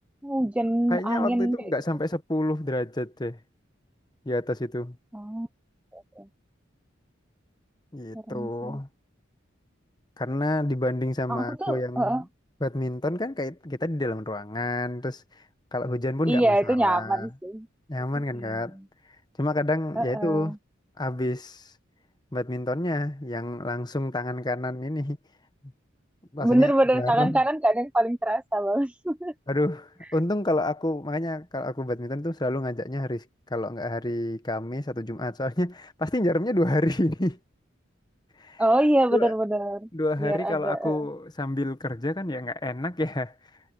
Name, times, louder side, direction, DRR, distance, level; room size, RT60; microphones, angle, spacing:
voice 1, 0.2-1.6 5.1-5.5 5.9-6.2 8.3-8.8 11.3-12.2 16.3-17.7 18.4-18.5 20.0-20.6 26.4-29.3 38.6-39.9 40.2-41.0, right 1 dB, 5° right, 0.5 m, -24 dB
voice 2, 0.9-3.4 4.2-5.0 7.9-8.9 10.2-12.2 12.6-15.2 15.7-17.3 17.9-18.8 19.4-20.6 21.0-21.6 22.3-25.2 26.3-27.4 29.5-33.2 33.5-37.4 38.4-38.6 39.1-39.3 39.9-43.3, left 1 dB, 20° left, 1.2 m, -28 dB
head